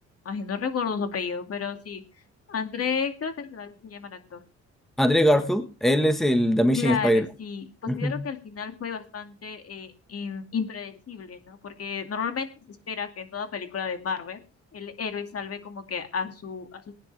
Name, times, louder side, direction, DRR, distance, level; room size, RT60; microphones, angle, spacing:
voice 1, 0.2-2.0 2.5-4.4 6.7-14.4 14.7-16.9, left 6 dB, 50° left, 7 dB, 2.4 m, -32 dB
voice 2, 5.0-7.2 7.9-8.1, equal, ahead, 8 dB, 1.6 m, -21 dB
19.5 x 10.0 x 3.5 m, 0.33 s
cardioid pair, 90°, 30 cm